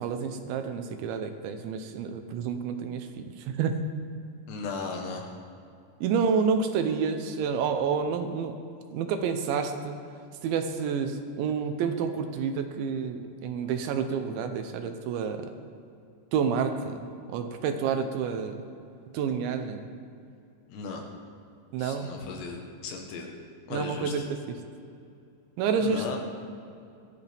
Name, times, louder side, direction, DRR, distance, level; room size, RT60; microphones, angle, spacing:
voice 1, 0.0-3.1 3.4-3.8 6.0-8.6 8.9-10.0 10.4-15.4 16.3-17.0 17.3-18.5 19.1-19.9 21.7-22.1 23.7-24.2 25.6-26.2, right 6 dB, 80° right, 7 dB, 3.0 m, -29 dB
voice 2, 4.5-5.3 20.7-21.1 21.8-23.3 23.7-24.1 25.8-26.2, left 4 dB, 70° left, 2 dB, 3.2 m, -36 dB
21.5 x 13.5 x 3.5 m, 2.5 s
omnidirectional pair, 5.5 m